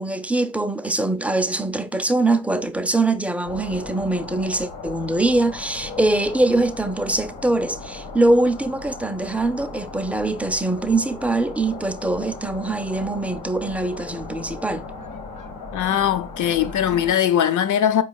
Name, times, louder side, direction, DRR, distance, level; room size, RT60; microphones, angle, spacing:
voice 1, 0.0-14.8, right 2 dB, 5° right, 0.3 m, -23 dB
sound 1, 3.4-17.1, left 3 dB, 80° left, 1.4 m, -37 dB
voice 2, 15.7-18.0, left 10 dB, 50° left, 0.6 m, -20 dB
4.6 x 3.1 x 2.3 m
supercardioid pair, 60°, 40 cm